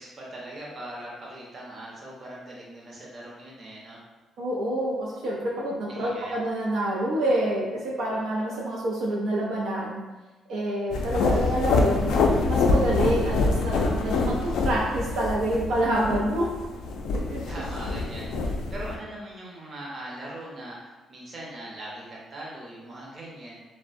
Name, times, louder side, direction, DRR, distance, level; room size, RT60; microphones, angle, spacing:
voice 1, 0.0-4.0 5.9-6.4 17.5-23.7, right 1 dB, 40° right, -4 dB, 0.7 m, -40 dB
voice 2, 4.4-10.0 10.5-12.2 12.5-16.4 17.3-17.4, right 1 dB, 80° right, -5 dB, 0.4 m, -27 dB
sound 1, 10.9-18.9, left 3 dB, 85° left, 0.3 m, -25 dB
2.6 x 2.1 x 2.5 m, 1.1 s
cardioid pair, 90°, 0 cm